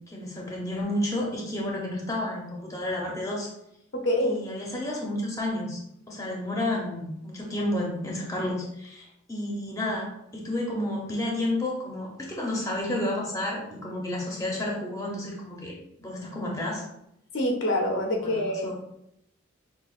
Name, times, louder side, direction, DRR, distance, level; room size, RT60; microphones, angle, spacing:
voice 1, 0.1-3.5 4.2-5.8 6.1-15.7 16.0-16.8 18.2-18.7, left 1 dB, 15° left, -3 dB, 0.7 m, -31 dB
voice 2, 4.0-4.4 17.3-18.7, left 1 dB, 60° left, 1 dB, 0.7 m, -25 dB
6.1 x 2.3 x 2.4 m, 0.80 s
head